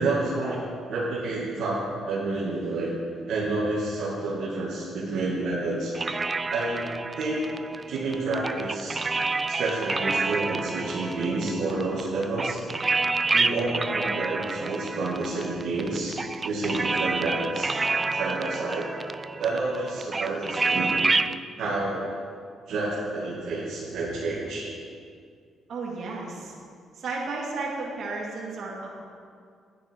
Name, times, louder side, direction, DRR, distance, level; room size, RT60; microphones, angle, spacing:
voice 1, 0.0-2.9 3.3-6.0 6.5-7.5 7.9-9.0 9.5-12.6 13.3-17.7 18.1-19.0 19.4-21.0 21.6-22.1 22.7-24.7, right 2 dB, 75° right, -6 dB, 2.0 m, -29 dB
sound 1, 6.0-21.4, right 3 dB, 25° right, 0.4 m, -29 dB
voice 2, 25.7-26.5 27.0-28.9, right 3 dB, 60° right, -3 dB, 2.4 m, -33 dB
10.0 x 9.7 x 4.6 m, 2.2 s
cardioid pair, 90°, 0 cm